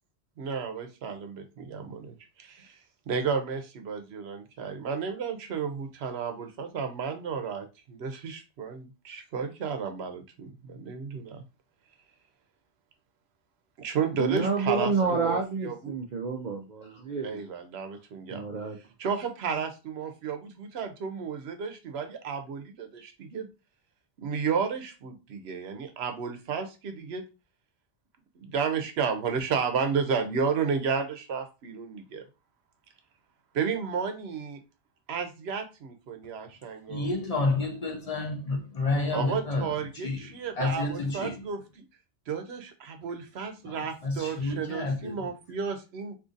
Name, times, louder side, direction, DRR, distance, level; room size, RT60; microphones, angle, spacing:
voice 1, 0.4-2.8 3.1-11.4 13.8-15.9 17.2-18.4 19.0-23.5 24.2-27.2 28.4-32.3 33.5-34.6 35.1-37.1 39.1-41.8 42.3-46.2, right 6 dB, 80° right, 0.9 m, -32 dB
voice 2, 14.1-17.4 18.3-18.8, right 4 dB, 55° right, 0.5 m, -29 dB
voice 3, 36.9-41.5 43.6-45.3, left 3 dB, 45° left, 0.5 m, -30 dB
2.7 x 2.6 x 3.7 m
omnidirectional pair, 1.1 m